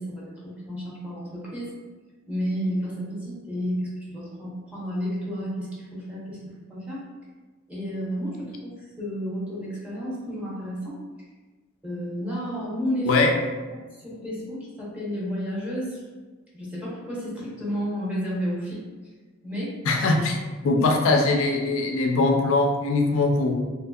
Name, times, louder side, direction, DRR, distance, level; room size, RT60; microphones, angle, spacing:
voice 1, 0.0-1.7 2.3-6.4 6.7-7.0 7.7-11.0 11.8-13.2 13.9-16.0 16.5-18.8 19.4-19.8 20.6-20.8, equal, 5° right, -7 dB, 0.7 m, -31 dB
voice 2, 19.9-20.4 20.6-23.5, left 3 dB, 80° left, 2 dB, 0.4 m, -21 dB
2.8 x 2.6 x 2.3 m, 1.3 s
head